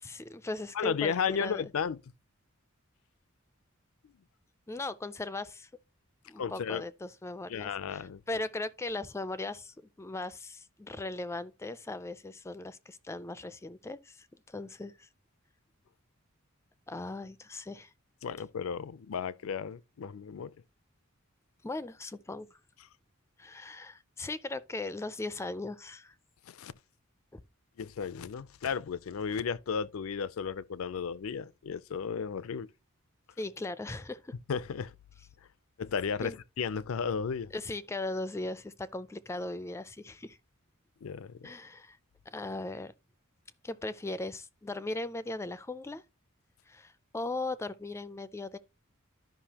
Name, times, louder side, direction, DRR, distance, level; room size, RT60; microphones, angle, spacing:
voice 1, 0.0-1.6 4.7-5.7 6.3-15.1 16.9-17.9 21.6-22.6 23.4-26.1 27.3-27.4 33.4-34.4 36.2-36.4 37.5-40.4 41.4-42.0 42.3-42.9 43.6-46.0 46.7-48.6, left 2 dB, 15° left, 0.3 m, -38 dB
voice 2, 0.7-2.0 6.4-6.8 7.5-8.2 18.2-20.5 26.5-26.7 27.8-32.7 34.5-34.9 35.8-37.5 41.0-41.5, left 6 dB, 75° left, 0.4 m, -34 dB
12.0 x 5.3 x 2.8 m
head